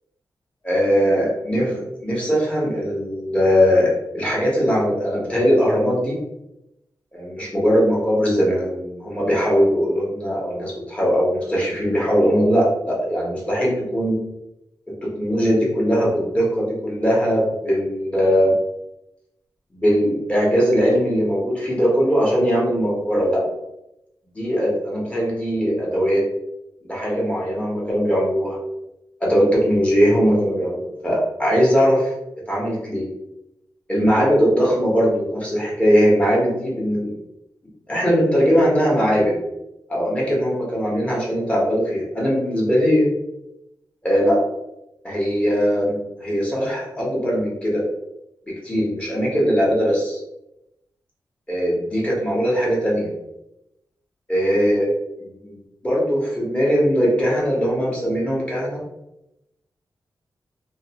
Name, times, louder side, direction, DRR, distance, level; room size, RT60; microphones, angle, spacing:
voice 1, 0.6-6.2 7.1-14.2 15.2-18.5 19.7-23.4 24.3-26.2 26.8-28.6 29.2-32.1 32.5-33.1 33.9-37.2 37.9-39.3 39.9-43.1 44.0-44.4 45.0-47.8 48.6-50.2 51.5-53.1 54.3-54.9 55.2-55.6 55.8-58.8, equal, 15° left, -5 dB, 1.0 m, -20 dB
2.5 x 2.1 x 2.8 m, 0.88 s
wide cardioid pair, 105°, 8 cm